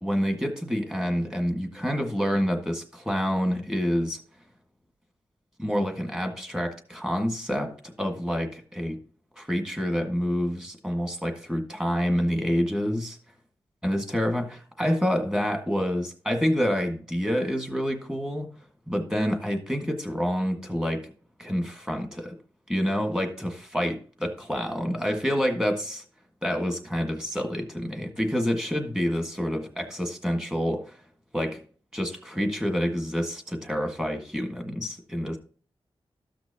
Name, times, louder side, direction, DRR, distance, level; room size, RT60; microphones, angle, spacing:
voice 1, 0.0-4.2 5.6-9.0 9.4-13.2 13.8-18.5 18.9-21.1 21.4-22.3 22.7-26.0 26.4-31.0 31.3-31.6 31.9-35.4, equal, 5° right, 4 dB, 1.7 m, -27 dB
14.0 x 6.0 x 2.9 m, 0.41 s
wide cardioid pair, 130°, 10 cm